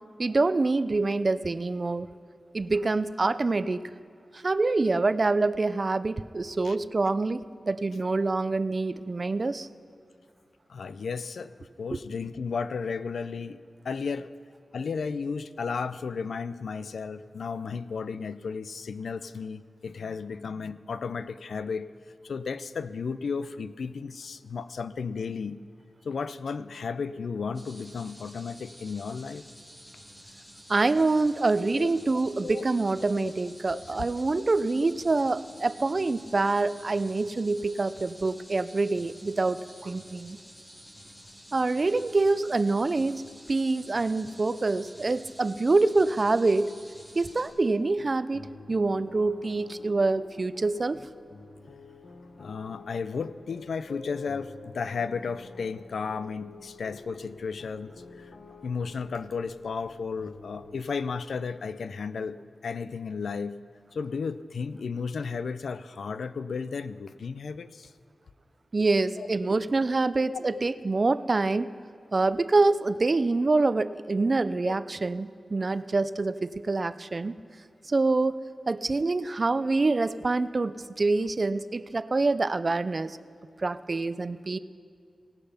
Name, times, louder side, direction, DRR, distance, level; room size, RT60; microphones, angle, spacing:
voice 1, 0.2-2.1 2.5-3.9 4.3-9.7 11.9-12.0 30.7-40.4 41.5-43.2 43.5-46.7 47.2-51.0 68.7-71.7 72.1-77.4 77.9-78.4 78.7-83.2 83.6-84.6, right 3 dB, 40° right, 15 dB, 0.3 m, -26 dB
voice 2, 10.7-13.6 13.8-14.3 14.7-21.9 22.2-25.6 26.0-29.5 31.8-32.7 33.1-33.3 33.7-34.1 52.4-58.4 58.6-62.4 62.6-63.6 63.9-67.9 69.2-69.3 70.3-70.6 74.7-74.8, left 5 dB, 85° left, 14 dB, 0.3 m, -34 dB
sound 1, 27.5-47.5, equal, 10° left, 2.3 m, -50 dB
sound 2, 47.3-60.9, left 3 dB, 50° left, 0.7 m, -49 dB
18.0 x 6.8 x 5.6 m, 2.3 s
wide cardioid pair, 120°, 0 cm